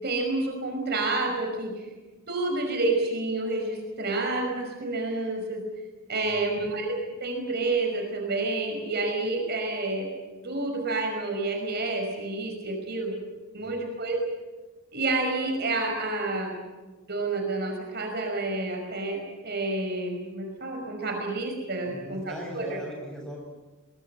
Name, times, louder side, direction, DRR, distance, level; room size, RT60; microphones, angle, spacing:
voice 1, 0.0-1.9 2.3-5.6 6.1-10.1 10.4-13.1 13.5-14.2 14.9-16.6 17.1-22.8, right 2 dB, 50° right, 3 dB, 5.4 m, -29 dB
voice 2, 6.2-6.6 13.6-13.8 21.8-23.6, equal, 5° left, 0 dB, 7.8 m, -40 dB
23.0 x 22.0 x 7.9 m, 1.2 s
head